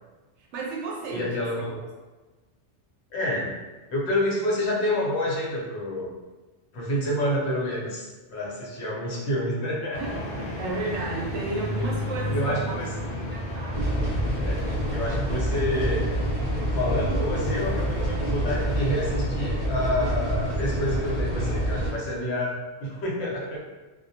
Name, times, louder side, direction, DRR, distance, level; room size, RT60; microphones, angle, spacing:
voice 1, 0.4-1.4 1.7-1.9 10.0-10.1 10.4-13.9, right 2 dB, 80° right, -3 dB, 0.9 m, -33 dB
voice 2, 1.1-1.8 3.1-3.6 3.9-6.1 6.7-10.2 11.8-11.9 12.3-13.3 14.4-16.0 16.7-23.6, left 1 dB, 70° left, -3 dB, 0.9 m, -28 dB
sound 1, 9.9-19.1, equal, 55° left, 0.5 m, -34 dB
sound 2, 13.7-21.9, equal, 45° right, 0.5 m, -27 dB
2.2 x 2.1 x 2.7 m, 1.2 s
omnidirectional pair, 1.2 m